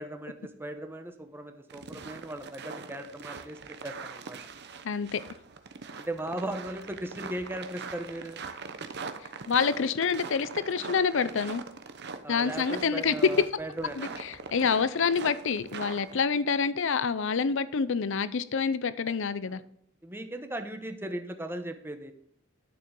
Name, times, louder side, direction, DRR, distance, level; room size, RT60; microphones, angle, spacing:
voice 1, 0.0-4.4 6.0-8.4 12.2-14.2 19.4-19.6 20.0-22.1, right 1 dB, 10° right, 1.0 m, -37 dB
sound 1, 1.7-16.2, right 4 dB, 55° right, 0.9 m, -42 dB
voice 2, 4.8-5.2 9.5-11.6 12.3-13.2 14.0-19.6, left 5 dB, 65° left, 0.6 m, -27 dB
12.0 x 6.8 x 3.8 m
head